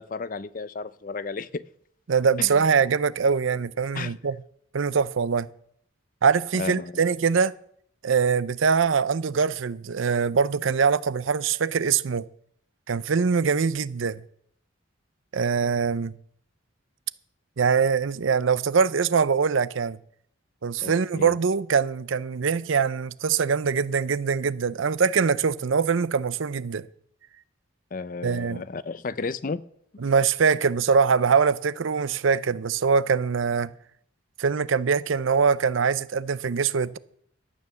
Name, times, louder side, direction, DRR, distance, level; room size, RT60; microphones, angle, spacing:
voice 1, 0.0-1.6 2.4-2.7 3.9-4.1 6.6-7.0 20.8-21.4 27.9-29.6, left 4 dB, 40° left, 0.5 m, -33 dB
voice 2, 2.1-4.4 4.7-5.5 6.2-7.5 8.0-12.3 12.9-14.2 15.3-16.1 17.6-20.0 20.6-26.9 28.2-28.6 30.0-33.7 34.4-37.0, right 5 dB, 75° right, 0.5 m, -23 dB
12.5 x 9.2 x 6.8 m
head